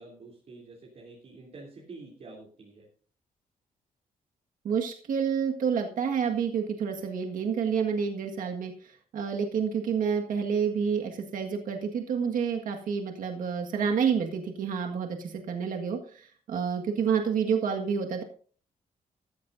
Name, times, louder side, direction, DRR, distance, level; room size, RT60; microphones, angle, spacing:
voice 1, 0.0-2.9, right 3 dB, 45° right, -2 dB, 3.3 m, -48 dB
voice 2, 4.6-8.7 9.1-18.2, right 6 dB, 65° right, 3 dB, 1.8 m, -29 dB
14.0 x 14.0 x 2.7 m, 0.43 s
wide cardioid pair, 170°, 15 cm